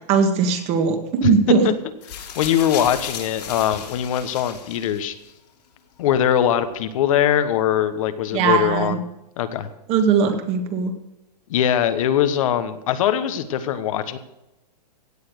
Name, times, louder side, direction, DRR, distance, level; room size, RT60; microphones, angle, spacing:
voice 1, 0.1-1.7 8.3-9.0 9.9-10.9, right 5 dB, 30° right, 6 dB, 1.8 m, -19 dB
sound 1, 2.0-5.3 6.2-6.3, left 7 dB, 70° left, 3.3 m, -35 dB
voice 2, 2.1-5.2 6.0-9.0 9.4-9.7 11.5-14.2, left 10 dB, 55° left, 11 dB, 1.2 m, -21 dB
16.5 x 7.2 x 6.5 m, 0.96 s
hypercardioid pair, 150°, 21 cm